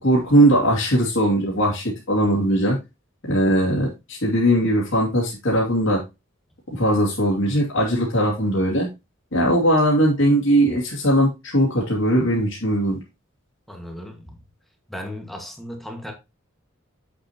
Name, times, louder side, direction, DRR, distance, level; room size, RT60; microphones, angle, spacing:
voice 1, 0.0-2.8 3.2-6.0 6.7-8.9 9.3-13.0, right 1 dB, 65° left, 2.5 m, -19 dB
voice 2, 13.7-14.4 14.9-16.1, left 1 dB, ahead, 1.6 m, -36 dB
7.7 x 6.5 x 2.9 m
head